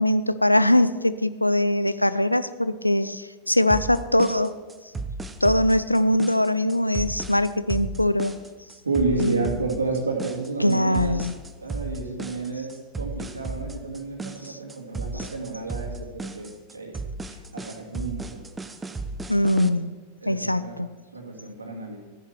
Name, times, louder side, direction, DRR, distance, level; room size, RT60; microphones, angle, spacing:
voice 1, 0.0-4.5 5.4-8.3 9.1-9.5 10.6-11.3 14.4-14.6 15.2-15.3 19.3-20.0 20.3-20.9, left 1 dB, 85° left, 15 dB, 0.5 m, -22 dB
sound 1, 3.7-19.7, right 3 dB, 10° right, 0.8 m, -35 dB
voice 2, 8.8-11.1 11.6-17.0 17.5-18.4 20.2-20.8 21.1-22.0, right 3 dB, 75° right, 1 dB, 2.2 m, -30 dB
14.0 x 10.5 x 4.5 m, 1.3 s
figure-of-eight pair, 90°, 0 cm